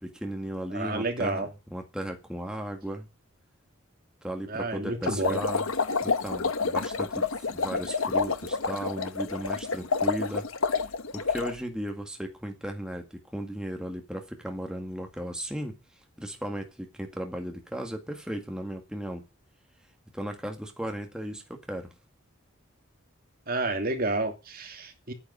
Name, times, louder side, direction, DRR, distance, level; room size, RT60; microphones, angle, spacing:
voice 1, 0.0-3.1 4.2-5.7 6.0-10.5 11.1-15.8 16.2-19.2 20.1-21.9, right 1 dB, 5° right, 1.8 m, -36 dB
voice 2, 0.7-1.5 4.5-5.4 23.5-25.1, right 2 dB, 45° right, 2.8 m, -30 dB
sound 1, 5.1-11.5, left 4 dB, 80° left, 1.2 m, -28 dB
9.9 x 8.4 x 9.8 m
head